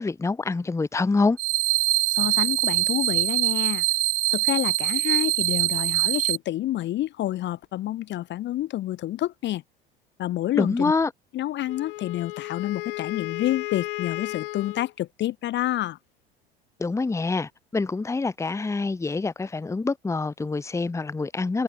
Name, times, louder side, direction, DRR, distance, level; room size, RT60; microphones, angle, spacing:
voice 1, 0.0-1.4 10.6-11.1 16.8-21.6, left 3 dB, 10° left, 1.0 m, -26 dB
sound 1, 1.4-6.4, right 21 dB, 45° right, 0.9 m, -23 dB
voice 2, 2.1-3.8 4.3-9.6 10.2-10.9 11.3-16.0, left 14 dB, 40° left, 1.0 m, -28 dB
Wind instrument woodwind instrument, 11.7-14.9, left 18 dB, 65° left, 3.4 m, -34 dB
figure-of-eight pair, 75°, 29 cm